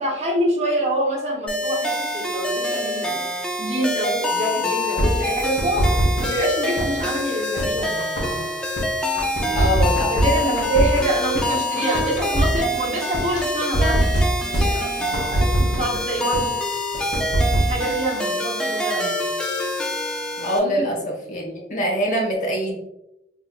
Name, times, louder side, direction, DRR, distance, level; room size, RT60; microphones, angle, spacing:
voice 1, 0.0-3.3 3.6-8.5 9.5-9.7 10.1-16.5 17.7-19.3 20.6-20.9, right 1 dB, 35° right, -3 dB, 0.8 m, -26 dB
sound 1, 1.5-20.6, left 1 dB, 5° left, 0.4 m, -26 dB
sound 2, 5.0-6.4 6.8-8.8 9.2-11.4 11.7-13.4 13.7-16.0 16.3-16.4 16.7-17.7, right 1 dB, 85° left, 1.1 m, -21 dB
voice 2, 9.5-10.1 20.4-20.9 21.3-22.8, equal, 45° left, -1 dB, 0.9 m, -23 dB
3.9 x 3.0 x 2.3 m, 0.86 s
head